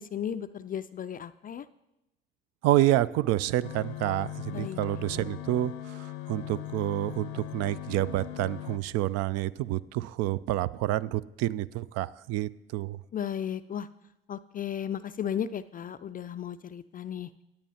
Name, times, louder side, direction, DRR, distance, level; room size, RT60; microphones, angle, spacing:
voice 1, 0.0-1.7 4.5-4.8 13.1-13.9 14.3-17.3, left 9 dB, 30° left, 12 dB, 0.4 m, -35 dB
voice 2, 2.6-13.0, right 15 dB, 55° right, 18 dB, 0.4 m, -28 dB
sound 1, 3.6-8.8, left 13 dB, 70° left, 0.7 m, -39 dB
17.0 x 9.0 x 2.8 m, 0.90 s
hypercardioid pair, 55°, 30 cm